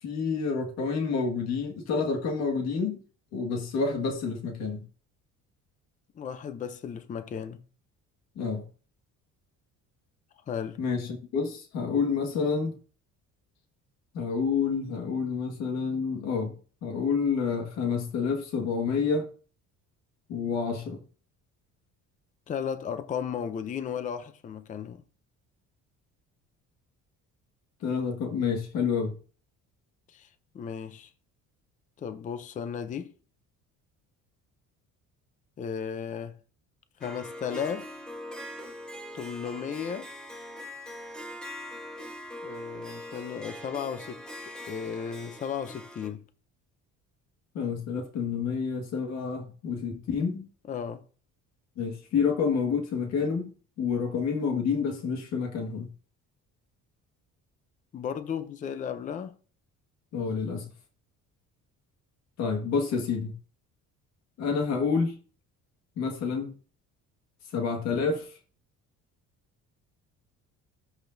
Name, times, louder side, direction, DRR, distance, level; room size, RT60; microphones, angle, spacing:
voice 1, 0.0-3.0 3.3-4.9 8.4-8.6 10.8-12.8 14.1-16.5 16.8-19.3 20.3-21.0 27.8-29.1 47.5-50.5 51.8-53.5 53.8-55.9 60.1-60.7 62.4-63.3 64.4-65.2 66.0-66.5 67.5-68.4, left 5 dB, 60° left, 1.8 m, -28 dB
voice 2, 6.2-7.6 10.5-10.8 22.5-25.0 30.1-30.3 30.5-31.1 32.0-33.1 35.6-36.4 37.0-37.9 39.1-40.1 42.4-44.2 44.7-46.2 50.7-51.0 57.9-59.4, left 7 dB, 25° left, 0.5 m, -35 dB
Harp, 37.0-46.1, left 1 dB, 5° left, 1.2 m, -42 dB
13.0 x 5.0 x 2.6 m
cardioid pair, 175°, 30 cm